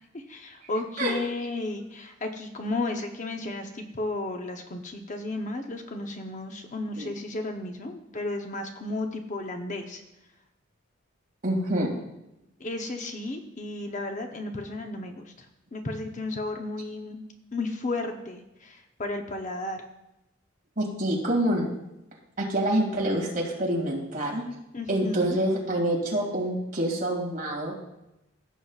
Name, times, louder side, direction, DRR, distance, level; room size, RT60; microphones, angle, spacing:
voice 1, 0.1-10.0 12.6-15.3 15.7-17.2 17.5-19.8 24.7-25.4, left 2 dB, 40° left, 4 dB, 0.8 m, -33 dB
voice 2, 11.4-11.9 20.8-21.7 22.4-24.4 24.9-27.7, right 1 dB, 45° right, -2 dB, 2.4 m, -26 dB
15.5 x 7.6 x 2.4 m, 0.91 s
head